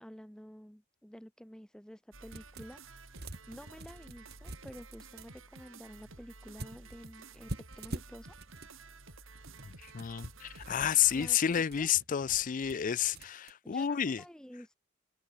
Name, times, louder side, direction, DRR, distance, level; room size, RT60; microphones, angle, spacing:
voice 1, 0.0-3.1 3.5-8.4 11.1-11.9 13.6-14.8, equal, 5° left, 1.5 m, -50 dB
sound 1, 2.1-11.3, right 3 dB, 75° right, 5.8 m, -52 dB
sound 2, 2.3-2.8 3.1-5.3 6.6-8.7 9.3-13.5, right 1 dB, 50° right, 3.6 m, -46 dB
voice 2, 9.6-14.2, left 9 dB, 40° left, 0.4 m, -30 dB
open air
head